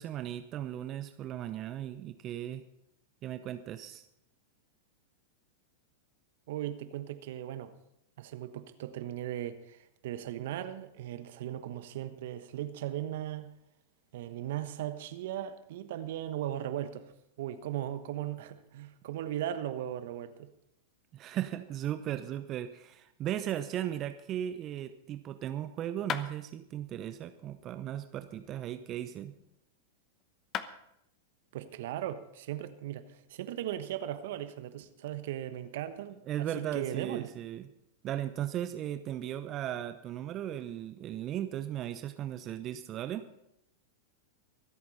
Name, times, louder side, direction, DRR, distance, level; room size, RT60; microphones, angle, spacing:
voice 1, 0.0-2.6 3.2-4.1 21.1-29.3 36.3-37.6 38.0-43.2, right 11 dB, 35° right, 0.8 m, -36 dB
voice 2, 6.5-7.7 8.2-13.5 14.1-17.1 17.4-20.5 31.5-37.3, right 12 dB, 60° right, 1.1 m, -38 dB
sound 1, 26.1-26.3 28.3-29.6 30.2-30.3 30.5-30.7, left 9 dB, 35° left, 0.9 m, -39 dB
24.5 x 8.6 x 4.2 m
hypercardioid pair, 100°, 0 cm